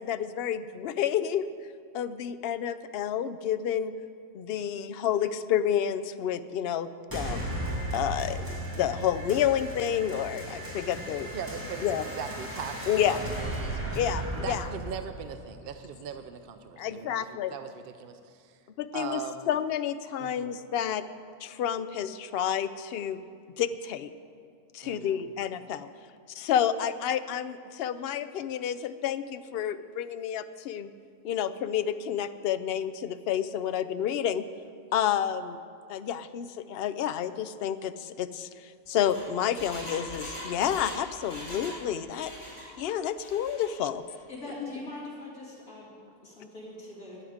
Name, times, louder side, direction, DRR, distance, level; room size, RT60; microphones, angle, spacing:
voice 1, 0.0-1.5 1.9-3.9 4.3-7.7 7.9-11.3 11.8-12.0 12.9-13.2 14.0-14.6 16.8-17.5 18.8-19.2 19.5-21.0 21.4-23.2 23.6-24.1 24.7-25.9 26.3-30.9 31.2-34.5 34.9-35.6 35.9-42.3 42.8-44.0, left 9 dB, 60° left, 12 dB, 0.6 m, -30 dB
sound 1, 7.1-16.1, right 1 dB, 15° right, 2.2 m, -36 dB
voice 2, 11.3-13.8 14.3-18.6 18.9-19.5 20.2-20.5 24.8-25.3, right 7 dB, 60° right, 8 dB, 0.6 m, -40 dB
Engine, 38.9-41.8 42.1-42.7 43.1-43.7 44.1-44.2, equal, 20° left, 3.8 m, -42 dB
voice 3, 44.3-46.0 46.2-47.2, left 2 dB, 85° left, -6 dB, 3.4 m, -42 dB
18.0 x 11.0 x 5.0 m, 2.3 s
omnidirectional pair, 1.5 m